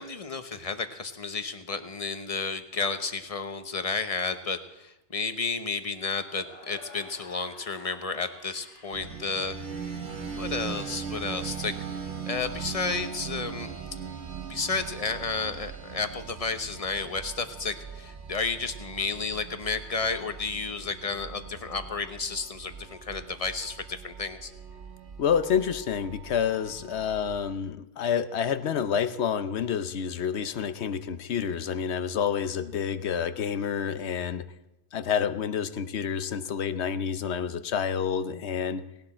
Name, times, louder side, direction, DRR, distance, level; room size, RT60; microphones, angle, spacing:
voice 1, 0.0-9.5 9.8-13.7 14.5-24.5, left 4 dB, 35° left, 9 dB, 1.0 m, -32 dB
sound 1, 6.3-10.5, left 3 dB, 60° left, 2.1 m, -51 dB
sound 2, 8.9-27.6, right 6 dB, 90° right, 1.7 m, -40 dB
voice 2, 25.2-34.4 34.9-38.8, left 7 dB, 80° left, 12 dB, 1.0 m, -28 dB
18.0 x 17.5 x 4.4 m, 0.88 s
omnidirectional pair, 1.1 m